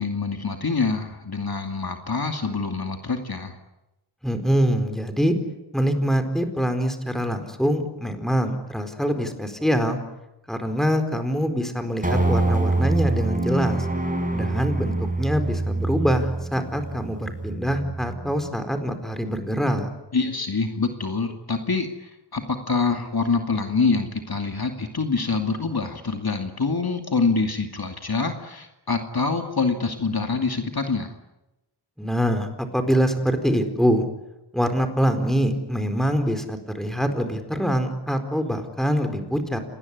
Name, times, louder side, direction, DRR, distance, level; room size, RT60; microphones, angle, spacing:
voice 1, 0.0-3.6 20.1-31.1, left 4 dB, 55° left, 4 dB, 2.6 m, -25 dB
voice 2, 4.2-5.3 5.7-10.0 10.5-13.9 14.3-19.9 32.0-34.0 34.5-39.6, equal, ahead, 7 dB, 4.3 m, -24 dB
sound 1, 12.0-18.5, right 2 dB, 20° right, 5.2 m, -25 dB
27.5 x 19.5 x 9.8 m, 0.96 s
wide cardioid pair, 60°, 44 cm